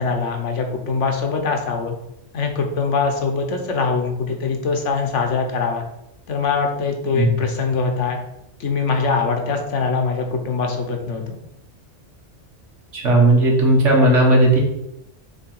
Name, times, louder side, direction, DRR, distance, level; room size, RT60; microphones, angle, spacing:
voice 1, 0.0-2.0 2.3-5.8 6.3-8.2 8.6-11.4, left 4 dB, 80° left, 4 dB, 1.3 m, -22 dB
voice 2, 12.9-14.6, right 1 dB, 90° right, -1 dB, 1.9 m, -15 dB
6.7 x 3.2 x 4.7 m, 0.85 s
omnidirectional pair, 1.2 m